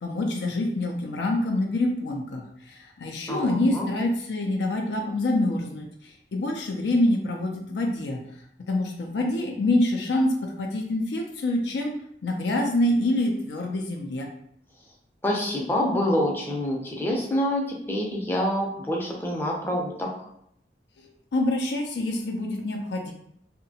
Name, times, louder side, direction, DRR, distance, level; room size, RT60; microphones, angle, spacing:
voice 1, 0.0-8.2 8.7-11.9 12.2-14.3 21.0-23.1, left 1 dB, 75° left, 2 dB, 0.4 m, -26 dB
voice 2, 3.3-3.9 15.2-20.1, left 1 dB, 10° left, -2 dB, 0.5 m, -26 dB
2.7 x 2.1 x 2.7 m, 0.71 s
head